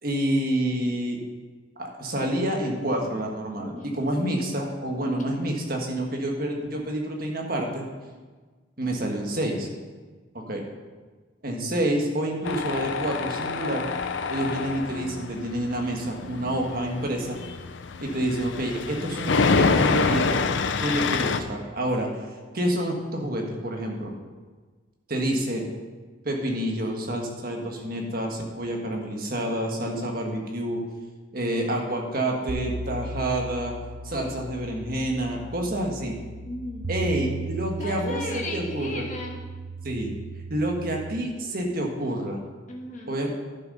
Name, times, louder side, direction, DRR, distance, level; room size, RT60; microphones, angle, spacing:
voice 1, 0.0-1.2 1.8-7.9 8.8-9.7 10.3-10.6 11.4-13.9 14.3-17.4 18.0-20.3 20.8-22.1 22.5-24.1 25.1-25.6 26.2-30.8 31.3-33.7 34.0-36.2 36.9-39.0 39.8-40.1 40.5-42.4 43.1-43.3, right 1 dB, 45° right, 1 dB, 1.5 m, -28 dB
voice 2, 3.6-4.0 5.0-5.4 36.4-36.8 37.8-39.4 42.7-43.1, left 1 dB, 40° left, -1 dB, 1.6 m, -36 dB
Tools, 12.5-21.4, left 4 dB, 65° left, 0.5 m, -27 dB
sound 1, 32.5-41.2, right 3 dB, 80° right, 0.8 m, -36 dB
11.0 x 6.4 x 5.4 m, 1.4 s
head